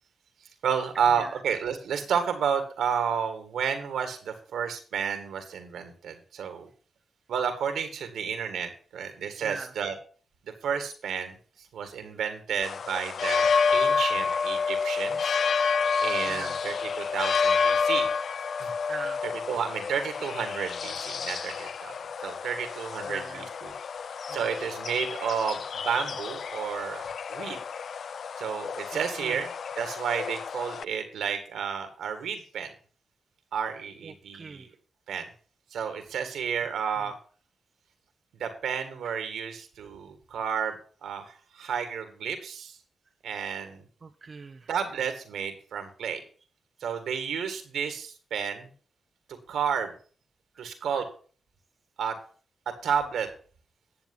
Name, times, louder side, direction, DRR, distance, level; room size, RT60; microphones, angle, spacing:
voice 1, 0.6-6.7 7.3-9.9 10.6-11.4 11.7-15.4 16.0-18.1 18.6-18.7 19.2-21.9 22.2-23.7 24.3-27.6 28.4-29.5 29.8-32.7 33.5-34.7 35.1-35.3 35.7-37.1 38.4-40.8 41.0-42.8 43.2-43.8 44.7-46.2 46.8-48.7 49.5-49.9 50.6-51.1 52.0-52.1 52.8-53.3, right 7 dB, 80° right, 8 dB, 2.0 m, -31 dB
voice 2, 9.4-9.7 16.2-16.6 18.9-19.2 23.1-23.5 24.3-24.6 29.2-29.4 34.0-34.7 44.0-44.7 50.9-51.0, right 4 dB, 50° right, 5 dB, 0.8 m, -41 dB
sound 1, 12.6-30.8, left 5 dB, 70° left, 0.4 m, -29 dB
10.5 x 7.3 x 5.5 m, 0.41 s
supercardioid pair, 45°, 0 cm